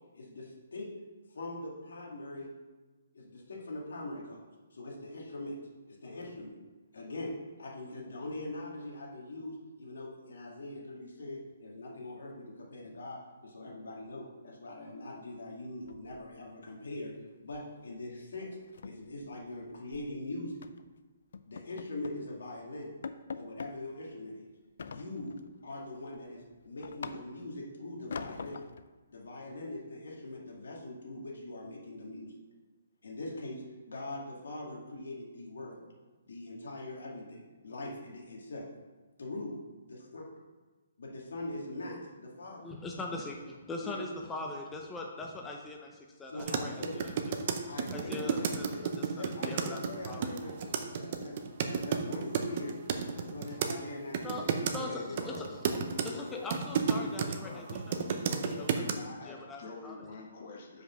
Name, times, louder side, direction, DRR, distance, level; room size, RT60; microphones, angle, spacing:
voice 1, 0.1-0.9 1.3-2.5 3.1-4.4 4.7-5.6 6.0-6.5 6.9-17.1 17.4-18.6 18.8-20.6 21.5-22.9 23.3-24.4 24.9-25.4 25.6-28.6 29.1-32.4 33.0-35.8 36.3-38.7 39.2-40.2 41.0-42.6 43.8-44.0 46.3-47.0 47.6-48.9 49.1-51.4 51.6-52.7 53.1-55.3 58.8-58.9, left 2 dB, 80° left, -1 dB, 1.9 m, -42 dB
sound 1, 15.9-16.7 17.0-17.2 17.5-17.7 18.0-18.1 18.5-20.1 20.6-20.9 21.3-22.3 22.6-22.7 23.0-23.8 24.8-25.5 26.0-27.6 28.1-28.9, left 5 dB, 65° left, 0.4 m, -44 dB
voice 2, 42.6-47.1 47.9-50.4 54.2-55.6 56.0-58.8 59.2-60.0, left 2 dB, 10° left, 0 dB, 0.5 m, -42 dB
sound 2, 46.4-53.7 54.1-54.8 55.2-57.4 57.7-58.9, right 7 dB, 40° right, 0.6 m, -32 dB
voice 3, 54.8-56.6 57.4-60.8, left 3 dB, 45° left, 0 dB, 0.9 m, -46 dB
5.2 x 5.0 x 5.6 m, 1.2 s
hypercardioid pair, 160°, 0 cm